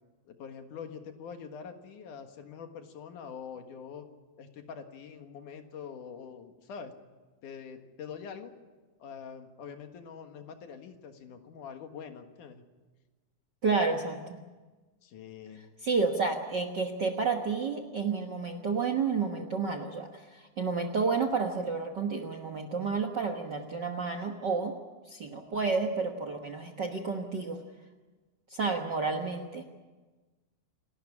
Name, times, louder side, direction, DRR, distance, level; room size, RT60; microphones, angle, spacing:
voice 1, 0.2-4.1 4.4-6.9 7.4-8.5 9.0-12.6 15.0-15.6, left 6 dB, 75° left, 6 dB, 3.1 m, -44 dB
voice 2, 13.6-14.4 15.8-24.8 25.1-27.6 28.5-29.6, right 4 dB, 50° right, 7 dB, 1.3 m, -30 dB
28.5 x 12.5 x 9.9 m, 1.3 s
omnidirectional pair, 3.7 m